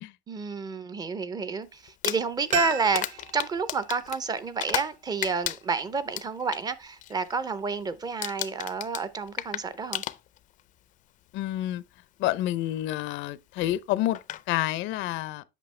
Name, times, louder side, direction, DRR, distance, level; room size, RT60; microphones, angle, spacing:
voice 1, 0.3-10.0, right 4 dB, 20° right, 0.5 m, -30 dB
Crumpling crinkling, 1.9-5.0 5.2-6.6 7.0-7.3 7.6-7.9 8.2-10.6 11.5-11.6 13.6-13.7 14.1-14.4, left 13 dB, 45° left, 0.4 m, -34 dB
sound 1, 2.5-5.3 5.6-5.7, right 7 dB, 40° right, 1.0 m, -36 dB
voice 2, 11.3-11.8 12.2-14.2 14.5-15.4, left 14 dB, 90° left, 0.6 m, -28 dB
8.3 x 6.0 x 3.2 m
cardioid pair, 175°, 19 cm